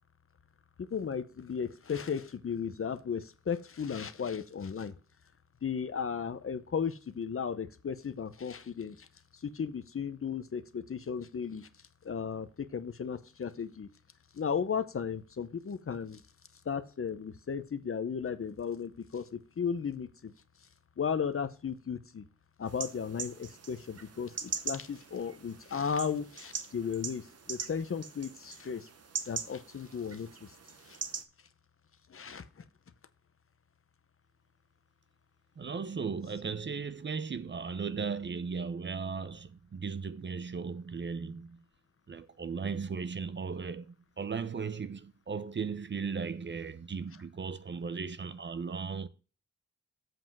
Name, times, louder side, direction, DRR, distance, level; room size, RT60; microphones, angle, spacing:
voice 1, 0.8-4.9 5.6-9.1 9.3-11.7 12.0-13.9 14.3-16.2 16.6-20.3 21.0-22.2 22.6-28.9 29.2-30.5 30.8-31.0 32.1-32.6, left 6 dB, 45° left, 0.8 m, -35 dB
sound 1, 22.7-31.2, right 6 dB, 55° right, 1.0 m, -42 dB
voice 2, 35.6-41.6 42.1-49.1, right 5 dB, 40° right, 0.6 m, -36 dB
7.8 x 5.1 x 6.0 m
cardioid pair, 80°, 30 cm